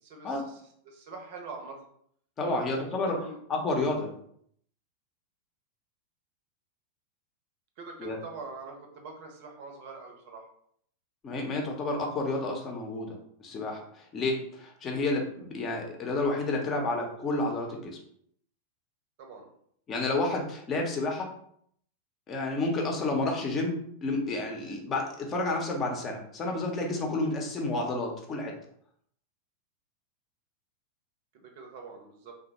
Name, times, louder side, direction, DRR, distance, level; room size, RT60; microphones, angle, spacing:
voice 1, 0.0-1.8 2.5-3.4 7.8-10.5 19.2-19.5 31.3-32.3, right 4 dB, 50° right, 2 dB, 0.7 m, -44 dB
voice 2, 2.4-3.2 3.5-4.1 8.0-8.2 11.2-13.8 14.1-18.0 19.9-21.3 22.3-28.5, left 2 dB, 25° left, 1 dB, 0.7 m, -30 dB
3.2 x 2.1 x 2.9 m, 0.66 s
figure-of-eight pair, 90°, 0 cm